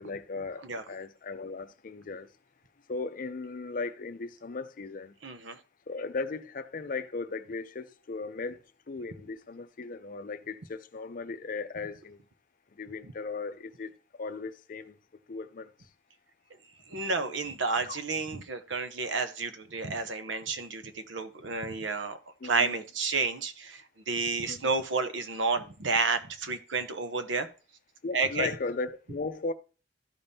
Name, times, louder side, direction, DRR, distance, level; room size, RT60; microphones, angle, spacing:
voice 1, 0.0-2.3 2.9-5.1 5.9-8.6 8.9-12.2 12.8-13.9 14.2-15.0 15.3-15.7 17.9-18.0 22.4-22.7 24.5-24.7 28.0-29.5, left 3 dB, 45° left, 0.5 m, -37 dB
voice 2, 5.2-5.6 16.9-22.2 22.4-27.5 28.1-28.5, right 4 dB, 80° right, 0.8 m, -31 dB
13.0 x 5.2 x 2.7 m
head